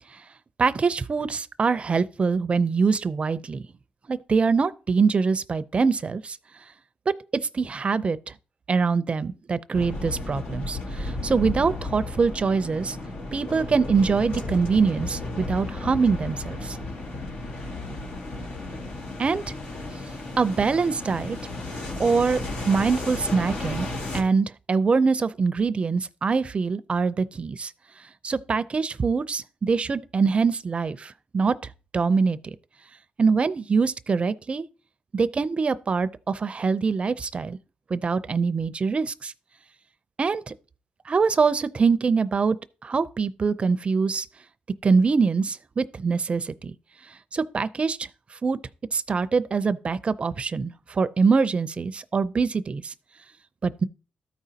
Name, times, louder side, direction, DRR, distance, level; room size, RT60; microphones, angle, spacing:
voice 1, 0.6-3.6 4.1-6.4 7.3-8.3 8.7-13.0 13.3-16.8 19.2-19.4 20.4-21.4 22.0-23.9 24.1-27.7 28.2-31.6 31.9-32.6 33.2-34.6 35.1-37.6 37.9-39.3 40.2-40.5 41.1-42.6 42.8-44.3 44.8-46.8 47.3-48.1 48.4-48.6 48.9-52.9 53.6-53.8, right 5 dB, 45° right, 0.5 m, -24 dB
sound 1, 9.7-24.2, left 2 dB, 75° left, 1.9 m, -33 dB
13.5 x 5.0 x 2.8 m
cardioid pair, 80°, 3 cm